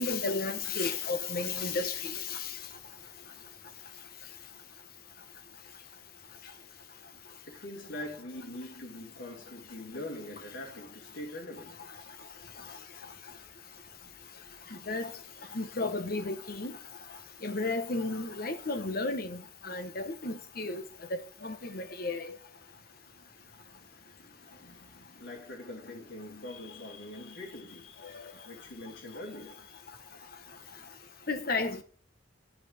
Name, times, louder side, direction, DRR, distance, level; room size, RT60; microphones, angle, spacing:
voice 1, 0.0-2.4 14.9-15.1 15.5-16.7 17.4-20.8 21.4-22.3 28.1-28.3 31.3-31.8, left 3 dB, 50° left, 1.1 m, -33 dB
voice 2, 7.5-11.9 22.7-29.8, left 1 dB, 85° left, 2.5 m, -44 dB
9.6 x 4.9 x 5.0 m
head